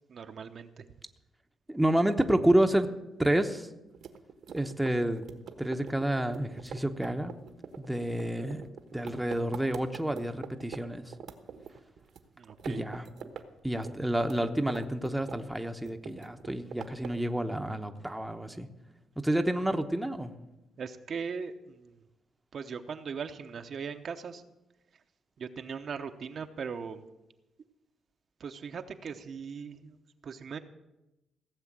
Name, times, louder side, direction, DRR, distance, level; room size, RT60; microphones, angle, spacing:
voice 1, 0.1-0.8 12.4-12.8 20.8-22.0 22.5-24.4 25.4-27.0 28.4-30.0 30.2-30.6, right 6 dB, 50° right, 6 dB, 0.8 m, -39 dB
voice 2, 1.7-2.9 3.2-3.7 4.5-5.3 5.6-7.3 7.8-8.6 8.9-11.1 12.6-13.1 13.6-18.7 19.2-20.3, right 1 dB, 5° right, 5 dB, 0.9 m, -29 dB
sound 1, 3.9-10.8 11.1-12.2 12.5-13.4 13.7-15.6 15.9-17.3, right 7 dB, 70° right, 1.2 m, -43 dB
16.5 x 7.5 x 7.5 m, 0.96 s
cardioid pair, 105°, 0 cm